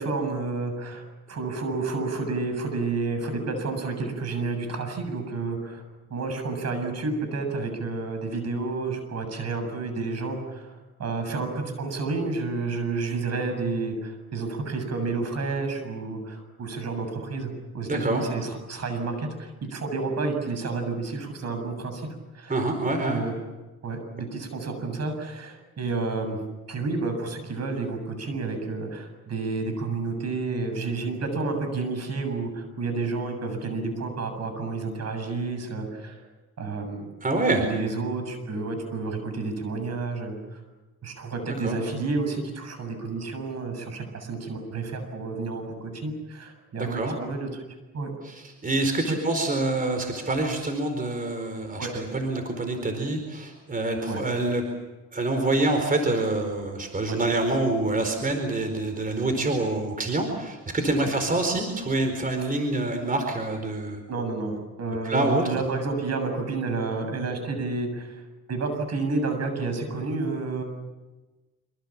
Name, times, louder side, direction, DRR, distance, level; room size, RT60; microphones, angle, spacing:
voice 1, 0.0-5.8 6.1-22.1 22.3-22.6 23.1-23.3 23.8-26.4 26.7-36.2 36.6-37.1 37.5-40.6 41.0-47.6 47.9-48.1 49.1-49.2 50.2-50.3 51.8-52.0 54.1-54.2 57.1-57.2 59.4-59.5 61.0-61.1 62.4-62.5 64.1-68.2 68.5-70.6, right 3 dB, 60° right, 6 dB, 7.4 m, -30 dB
voice 2, 17.9-18.2 22.5-23.2 37.2-37.6 41.6-41.8 46.8-47.2 48.2-54.6 55.1-64.0 65.0-65.5, right 2 dB, 30° right, 5 dB, 4.5 m, -26 dB
26.0 x 25.0 x 7.4 m, 1.2 s
cardioid pair, 90°, 30 cm